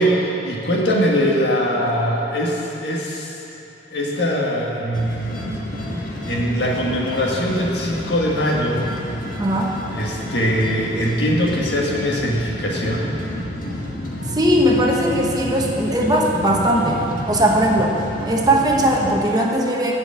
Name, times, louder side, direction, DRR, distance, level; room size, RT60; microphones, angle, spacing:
voice 1, 0.0-3.4 3.9-5.6 6.0-8.9 9.9-13.1, equal, 70° left, -3 dB, 1.8 m, -22 dB
sound 1, 4.9-19.2, left 1 dB, 50° left, 1.5 m, -30 dB
voice 2, 9.4-9.7 14.3-18.0 18.3-19.9, right 1 dB, 20° right, -1 dB, 1.0 m, -19 dB
11.0 x 5.3 x 8.5 m, 2.9 s
head